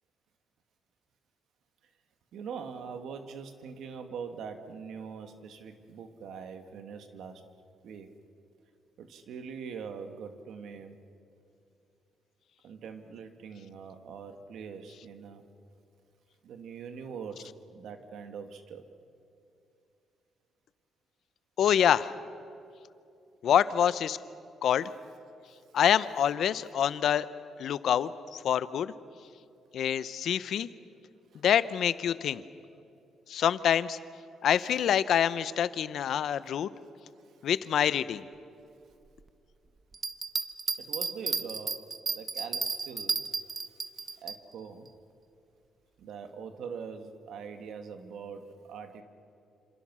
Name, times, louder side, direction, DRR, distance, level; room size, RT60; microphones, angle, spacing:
voice 1, 2.3-7.4 7.8-8.1 9.0-11.0 12.6-15.4 16.4-18.8 31.3-31.4 40.8-41.8 42.1-43.2 44.2-44.9 46.0-49.0, right 6 dB, 75° right, 7 dB, 2.0 m, -43 dB
voice 2, 21.6-22.1 23.4-24.2 24.6-24.9 25.7-27.3 27.6-28.9 29.7-30.7 31.4-32.4 33.3-34.0 34.4-36.7 37.4-38.2, left 9 dB, 70° left, 15 dB, 0.8 m, -26 dB
sound 1, 39.9-44.4, right 4 dB, 35° right, 1.3 m, -32 dB
28.0 x 27.0 x 6.2 m, 2.6 s
cardioid pair, 90°, 0 cm